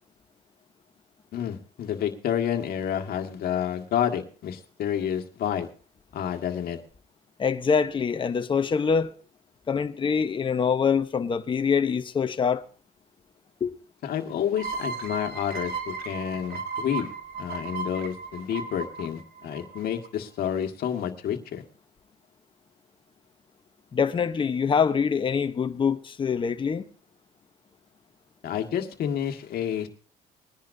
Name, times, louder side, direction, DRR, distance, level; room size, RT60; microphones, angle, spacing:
voice 1, 1.3-5.7 6.1-6.8 14.0-17.1 17.4-21.6 28.4-29.9, left 9 dB, 65° left, 1.7 m, -29 dB
voice 2, 7.4-9.1 9.7-12.6 13.6-13.7 23.9-26.9, left 6 dB, 30° left, 0.9 m, -24 dB
sound 1, 14.6-20.1, right 4 dB, 65° right, 2.0 m, -35 dB
21.0 x 10.5 x 2.7 m
cardioid pair, 110°, 17 cm